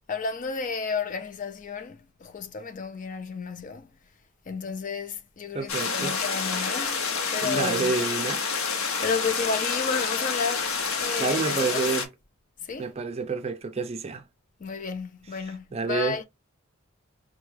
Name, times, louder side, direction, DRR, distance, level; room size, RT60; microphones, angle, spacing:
voice 1, 0.1-3.9 4.5-7.9 8.6-11.9 12.6-12.9 14.6-16.2, left 5 dB, 40° left, 0.4 m, -32 dB
voice 2, 5.5-6.1 7.4-8.4 11.2-12.1 12.8-14.2 15.7-16.2, right 4 dB, 30° right, 0.4 m, -28 dB
sound 1, 5.7-12.1, left 5 dB, 80° left, 0.8 m, -28 dB
4.5 x 2.2 x 3.2 m
head